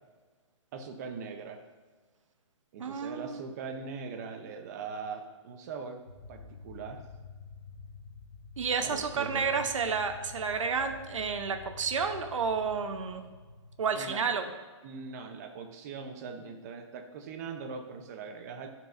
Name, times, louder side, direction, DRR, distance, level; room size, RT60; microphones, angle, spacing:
voice 1, 0.7-1.6 2.7-6.0 6.3-7.0 8.8-9.6 14.0-14.2 14.8-18.7, right 5 dB, 35° right, 5 dB, 0.8 m, -41 dB
voice 2, 2.8-3.4 8.6-13.2 13.8-14.5, right 5 dB, 85° right, 7 dB, 0.9 m, -31 dB
sound 1, 6.1-14.0, left 4 dB, 65° left, 1.1 m, -49 dB
12.5 x 4.6 x 2.6 m, 1.4 s
hypercardioid pair, 165°, 16 cm